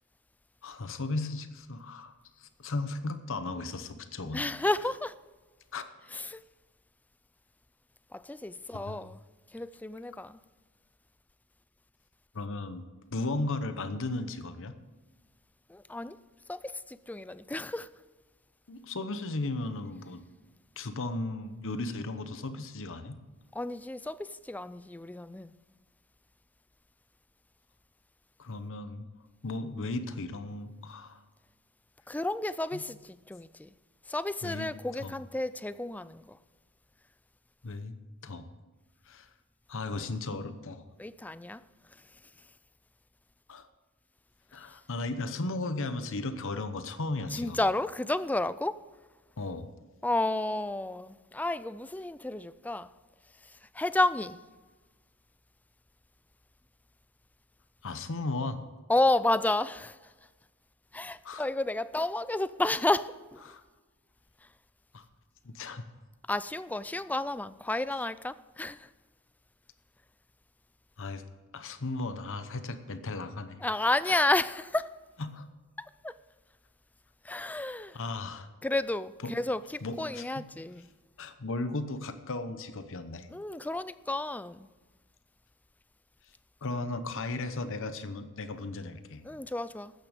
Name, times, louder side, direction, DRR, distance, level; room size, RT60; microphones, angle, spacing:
voice 1, 0.6-4.4 5.7-5.8 8.7-9.0 12.3-12.8 13.1-14.7 18.7-20.2 20.8-23.2 28.4-29.1 29.4-31.2 32.7-32.8 34.4-34.7 35.0-35.1 37.6-37.9 38.2-38.5 39.1-39.3 39.7-40.8 43.5-43.7 44.5-47.6 49.4-49.7 57.8-58.6 61.2-61.5 63.4-63.6 64.9-65.0 65.4-65.9 71.0-71.2 71.5-73.6 74.1-74.2 75.2-75.5 77.9-78.5 79.2-79.3 79.8-80.4 81.2-83.3 86.6-89.2, left 2 dB, 60° left, 0.9 m, -36 dB
voice 2, 4.3-5.1 6.1-6.4 8.1-9.2 9.5-10.4 15.7-16.2 16.5-17.9 23.5-25.5 32.1-33.7 34.1-36.4 41.0-41.6 47.3-48.9 50.0-52.9 53.4-54.4 58.9-60.1 60.9-63.4 66.3-68.9 73.6-75.0 75.8-76.2 77.2-78.0 78.6-80.9 83.3-84.7 89.2-89.9, left 2 dB, 5° left, 0.3 m, -31 dB
13.5 x 9.2 x 5.2 m
head